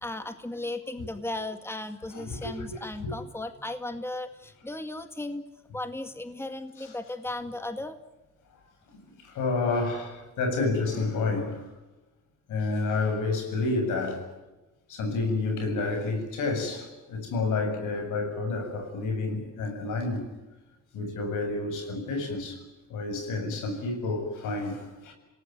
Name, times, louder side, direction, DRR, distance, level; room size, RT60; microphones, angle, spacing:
voice 1, 0.0-5.4 5.7-8.0, left 2 dB, 10° left, 8 dB, 2.0 m, -36 dB
voice 2, 2.1-3.1 6.8-6.9 9.2-11.6 12.5-14.2 14.9-20.3 20.9-22.6 22.9-25.1, left 3 dB, 85° left, 5 dB, 7.6 m, -29 dB
27.5 x 18.5 x 9.5 m, 1.1 s
cardioid pair, 90°, 30 cm